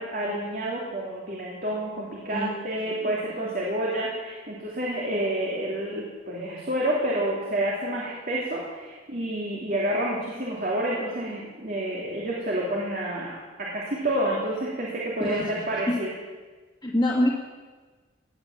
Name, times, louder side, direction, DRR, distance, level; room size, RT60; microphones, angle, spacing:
voice 1, 0.0-16.1, right 1 dB, 45° right, -4 dB, 3.0 m, -29 dB
voice 2, 2.3-3.1 15.2-15.5 15.9-16.0 16.8-17.3, left 1 dB, 20° left, -4 dB, 2.1 m, -26 dB
18.5 x 10.5 x 7.3 m, 1.3 s
head